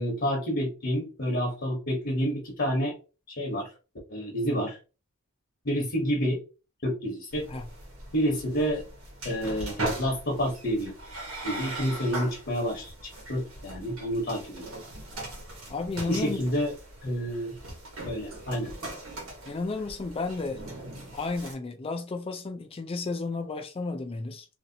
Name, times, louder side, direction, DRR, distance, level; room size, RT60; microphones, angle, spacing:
voice 1, 0.0-2.9 3.3-3.7 4.1-4.8 5.6-6.4 6.8-7.5 8.1-8.8 9.2-10.9 11.4-14.8 16.1-16.7 17.0-17.5 18.0-18.7, equal, 55° left, 0.9 m, -29 dB
sound 1, 7.3-21.5, right 2 dB, 85° right, 1.2 m, -39 dB
voice 2, 15.7-16.4 19.5-20.6 21.1-24.5, left 3 dB, 25° left, 0.4 m, -32 dB
2.9 x 2.7 x 2.7 m
head